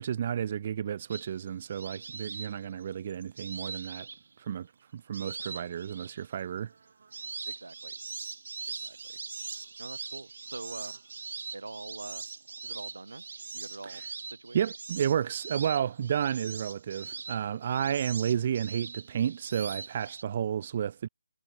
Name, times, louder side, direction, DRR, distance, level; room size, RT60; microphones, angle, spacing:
voice 1, 0.0-4.1 4.4-4.7 4.9-6.7 14.5-21.1, right 9 dB, 35° right, 0.9 m, -31 dB
sound 1, 1.1-4.6 5.1-6.2 6.7-20.2, right 4 dB, 60° right, 1.0 m, -42 dB
voice 2, 7.4-8.0 8.7-9.2 9.8-11.0 11.5-12.3 12.6-13.3 13.5-14.7, right 3 dB, 85° right, 5.2 m, -44 dB
figure-of-eight pair, 160°, 0 cm